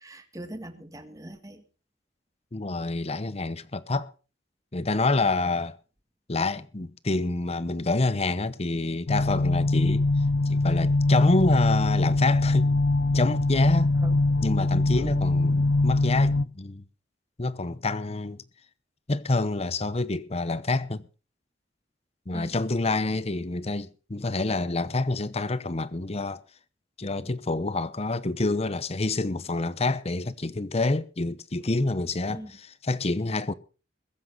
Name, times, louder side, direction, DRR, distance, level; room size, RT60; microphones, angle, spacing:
voice 1, 0.0-1.6 14.0-14.2 14.9-15.1 22.3-22.6 32.3-32.5, right 1 dB, 20° right, 1.8 m, -41 dB
voice 2, 2.5-4.1 4.7-5.8 6.3-10.1 10.5-12.7 13.1-14.0 14.4-16.8 17.4-18.4 19.1-21.0 22.3-26.4 27.0-33.5, left 2 dB, 35° left, 0.9 m, -27 dB
sound 1, 9.1-16.4, left 2 dB, 70° left, 0.6 m, -23 dB
21.5 x 7.7 x 5.5 m
head